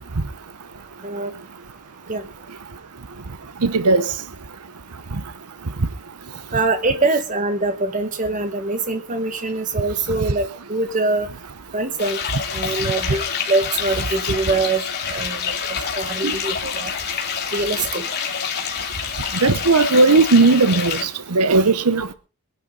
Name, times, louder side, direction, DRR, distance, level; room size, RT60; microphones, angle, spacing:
voice 1, 1.0-1.3 2.1-2.2 6.5-11.3 11.7-12.2 12.5-14.8 15.1-15.5 16.0-16.9 17.5-18.0, right 3 dB, 35° right, 1.8 m, -23 dB
voice 2, 3.6-4.1 16.2-16.3 19.4-22.1, right 3 dB, 85° right, 0.9 m, -16 dB
sound 1, 12.0-21.0, left 7 dB, 50° left, 2.8 m, -27 dB
22.0 x 11.5 x 4.0 m
head